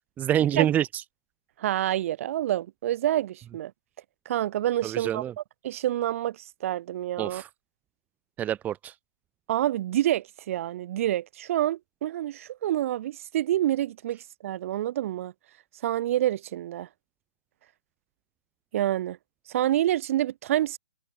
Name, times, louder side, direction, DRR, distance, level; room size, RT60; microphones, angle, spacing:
voice 1, 0.2-1.0 4.8-5.3 7.2-7.5 8.4-8.9, right 11 dB, 15° right, 2.7 m, -26 dB
voice 2, 1.6-3.7 4.3-5.2 5.6-7.4 9.5-15.3 15.8-16.9 18.7-19.2 19.5-20.8, right 13 dB, 40° right, 5.5 m, -27 dB
hypercardioid pair, 140°, 11 cm